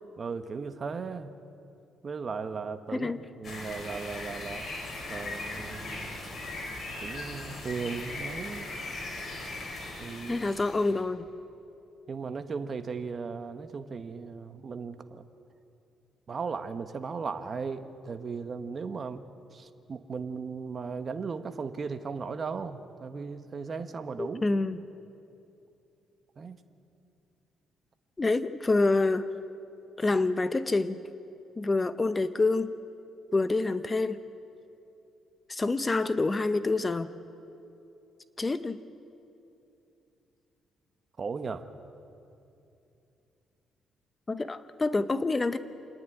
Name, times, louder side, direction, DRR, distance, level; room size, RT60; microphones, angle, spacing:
voice 1, 0.2-1.3 2.0-3.1 3.4-4.7 5.1-6.2 7.0-8.7 10.0-10.5 12.1-15.2 16.3-19.2 19.5-24.4 26.4-26.6 41.2-41.6, right 5 dB, 40° right, 8 dB, 1.1 m, -36 dB
sound 1, 3.4-11.0, left 2 dB, 45° left, 4.8 m, -39 dB
voice 2, 10.3-11.3 24.2-24.8 28.2-29.2 30.0-31.0 31.6-32.7 33.3-34.2 35.5-37.1 38.4-38.8 44.3-45.6, left 3 dB, 25° left, 12 dB, 0.7 m, -27 dB
27.0 x 10.5 x 9.8 m, 2.7 s
cardioid pair, 90°, 0 cm